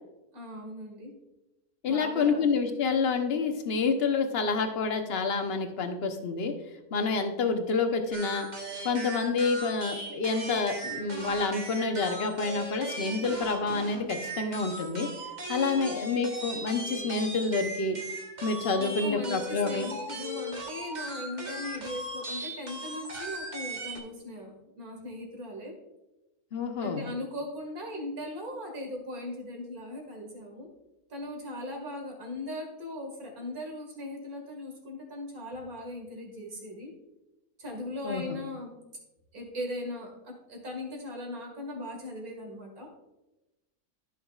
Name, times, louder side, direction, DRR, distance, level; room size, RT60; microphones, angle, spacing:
voice 1, 0.3-1.1 1.8-2.5 15.7-16.2 18.8-25.7 26.8-30.7 31.1-36.9 37.6-38.7 39.3-42.9, left 1 dB, 65° right, 1 dB, 2.4 m, -39 dB
voice 2, 1.8-6.5 6.9-8.5 8.8-15.1 15.5-18.0 18.4-19.9 26.5-27.1 38.0-38.4, left 4 dB, 45° left, 6 dB, 1.0 m, -28 dB
sound 1, 8.1-24.0, right 2 dB, 30° right, 1.1 m, -38 dB
14.0 x 6.4 x 2.4 m, 0.98 s
omnidirectional pair, 1.7 m